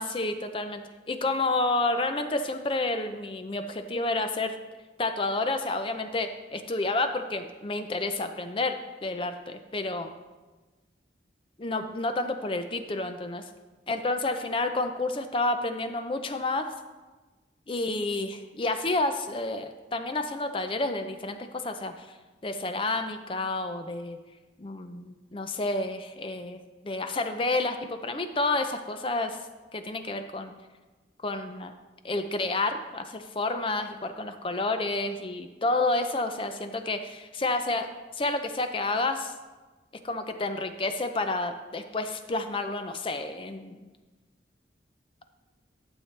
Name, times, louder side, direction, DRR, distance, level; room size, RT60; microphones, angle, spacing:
voice 1, 0.0-4.6 5.0-10.2 11.6-13.4 13.9-16.7 17.7-22.1 22.4-24.2 24.6-29.4 29.7-30.5 31.2-31.7 32.0-37.9 38.2-39.3 40.0-43.9, left 2 dB, 30° left, 7 dB, 0.5 m, -30 dB
11.5 x 7.2 x 3.3 m, 1.2 s
head